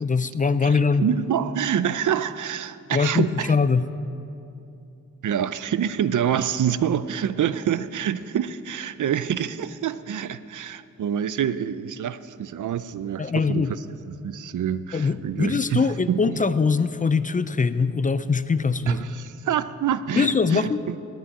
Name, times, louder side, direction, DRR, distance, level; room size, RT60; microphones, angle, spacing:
voice 1, 0.0-1.0 2.9-3.9 13.2-13.8 14.9-19.0 20.2-20.8, left 5 dB, 25° left, 13 dB, 0.4 m, -22 dB
voice 2, 0.6-3.5 5.2-13.8 14.2-16.4 18.9-21.0, right 9 dB, 80° right, 15 dB, 0.5 m, -26 dB
18.0 x 6.2 x 9.3 m, 2.7 s
wide cardioid pair, 140°, 30 cm